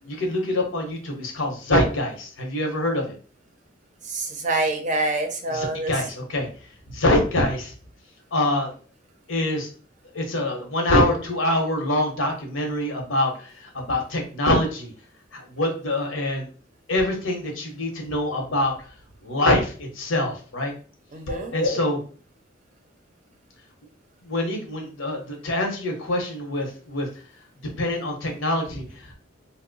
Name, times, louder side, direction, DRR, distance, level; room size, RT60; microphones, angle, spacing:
voice 1, 0.0-3.2 5.5-6.5 6.9-7.7 8.3-8.7 9.3-9.7 10.1-14.9 15.3-16.5 16.9-18.9 19.2-20.7 21.3-22.0 24.2-27.1 27.8-29.1, left 1 dB, 80° left, 2 dB, 0.9 m, -25 dB
voice 2, 4.0-5.9 21.1-21.6, right 2 dB, 40° right, 4 dB, 0.5 m, -26 dB
2.9 x 2.0 x 3.9 m, 0.40 s
head